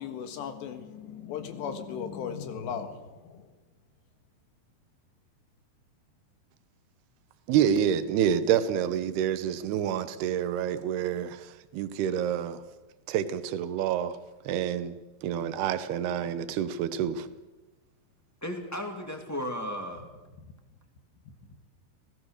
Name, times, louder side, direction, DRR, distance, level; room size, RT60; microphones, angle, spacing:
voice 1, 0.0-3.5, left 7 dB, 90° left, 7 dB, 3.9 m, -37 dB
voice 2, 7.5-12.6 13.1-14.2 14.5-15.0 15.2-17.3, right 9 dB, 75° right, 12 dB, 3.0 m, -28 dB
voice 3, 18.4-20.1, equal, 5° left, 3 dB, 1.5 m, -34 dB
27.5 x 17.5 x 6.6 m, 1.1 s
omnidirectional pair, 4.8 m